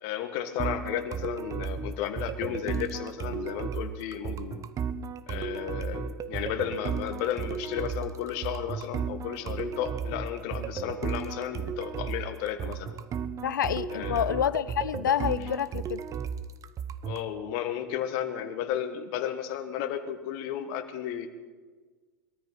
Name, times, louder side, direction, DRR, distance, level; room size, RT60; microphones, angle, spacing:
voice 1, 0.0-4.6 5.3-12.9 13.9-14.3 17.0-21.3, left 10 dB, 55° left, 9 dB, 1.5 m, -33 dB
sound 1, 0.6-17.3, right 7 dB, 35° right, 0.8 m, -34 dB
voice 2, 13.4-16.0, left 9 dB, 80° left, 18 dB, 0.5 m, -28 dB
22.0 x 13.5 x 4.9 m, 1.4 s
hypercardioid pair, 95°, 10 cm